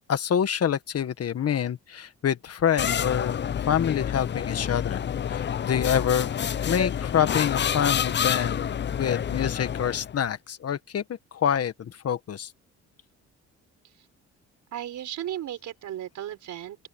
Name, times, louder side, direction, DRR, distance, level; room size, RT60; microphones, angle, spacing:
voice 1, 0.1-3.4 3.7-6.3 6.7-8.6 9.0-11.0 11.3-12.5, left 8 dB, 55° left, 1.6 m, -26 dB
sound 1, 2.8-10.2, left 8 dB, 40° left, 0.6 m, -28 dB
voice 2, 14.7-16.8, right 11 dB, 75° right, 4.9 m, -35 dB
open air
cardioid pair, 90°, 30 cm